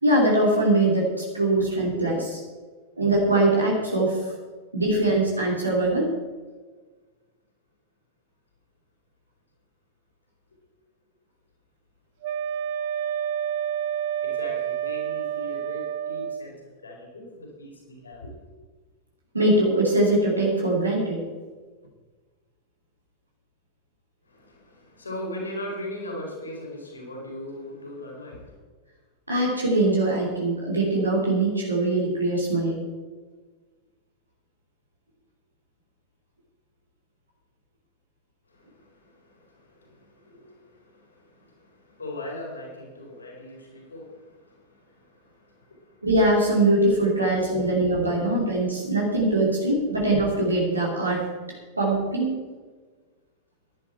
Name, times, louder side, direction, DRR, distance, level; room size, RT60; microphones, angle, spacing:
voice 1, 0.0-2.4 3.0-4.2 4.7-6.1 19.3-21.2 29.3-32.8 46.0-51.3 51.8-52.4, right 2 dB, 80° right, -3 dB, 2.8 m, -22 dB
Wind instrument woodwind instrument, 12.2-16.5, right 9 dB, 50° right, 0.4 m, -29 dB
voice 2, 14.2-18.3 24.2-28.6 38.5-46.1, left 1 dB, 75° left, -1 dB, 4.4 m, -40 dB
15.0 x 11.0 x 4.5 m, 1.4 s
figure-of-eight pair, 90°, 0 cm